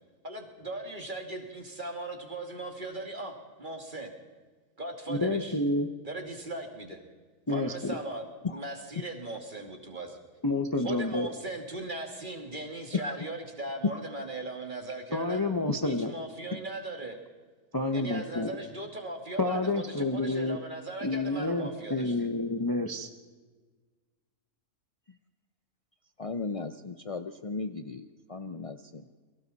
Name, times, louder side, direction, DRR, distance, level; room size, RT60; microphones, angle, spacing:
voice 1, 0.2-4.1 4.8-5.6 6.0-7.0 7.5-10.2 10.8-15.4 15.8-17.2 17.9-22.1, right 2 dB, 30° right, 3 dB, 2.4 m, -38 dB
voice 2, 5.1-5.9 7.5-8.0 10.4-11.3 15.1-16.1 17.7-18.5 19.4-20.6 21.0-23.1, left 2 dB, 15° left, 5 dB, 0.8 m, -29 dB
voice 3, 26.2-28.0 28.3-28.8, left 3 dB, 55° left, 8 dB, 0.4 m, -36 dB
29.0 x 23.0 x 4.2 m, 1.4 s
omnidirectional pair, 1.6 m